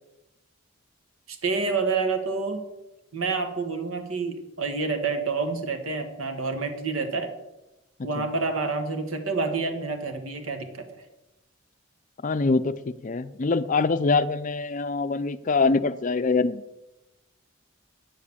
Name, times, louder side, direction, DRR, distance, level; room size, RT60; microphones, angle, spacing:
voice 1, 1.3-2.6 3.1-7.3 8.0-11.0, right 4 dB, 80° right, 6 dB, 1.6 m, -28 dB
voice 2, 12.2-16.6, left 4 dB, 40° left, 13 dB, 0.5 m, -24 dB
8.9 x 7.4 x 7.0 m, 0.98 s
head